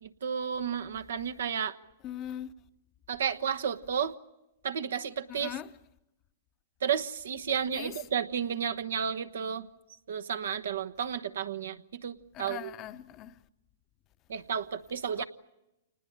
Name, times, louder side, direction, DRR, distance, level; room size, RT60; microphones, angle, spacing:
voice 1, 0.0-1.8 3.1-4.1 4.6-5.5 6.8-9.7 10.1-12.7 14.3-15.2, right 7 dB, 75° right, 1.1 m, -32 dB
voice 2, 2.0-2.5 5.3-5.7 7.7-8.0 12.3-13.4 15.2-15.3, left 11 dB, 35° left, 0.9 m, -40 dB
27.5 x 20.0 x 8.9 m
hypercardioid pair, 120°, 0 cm